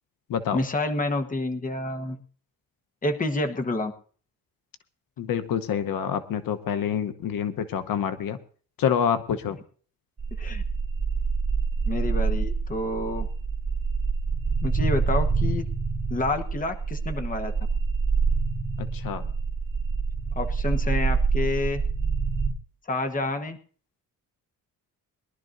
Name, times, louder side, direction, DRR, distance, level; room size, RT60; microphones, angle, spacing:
voice 1, 0.5-2.2 3.0-3.9 10.4-10.6 11.9-13.3 14.6-15.7 16.1-17.5 20.3-21.8 22.9-23.6, left 2 dB, 25° left, 6 dB, 1.2 m, -28 dB
voice 2, 5.2-8.4 8.8-9.6 18.8-19.3, left 8 dB, 80° left, 11 dB, 1.0 m, -27 dB
sound 1, 10.2-22.5, right 4 dB, 30° right, 1.5 m, -26 dB
22.0 x 12.0 x 2.6 m, 0.43 s
wide cardioid pair, 145°, 34 cm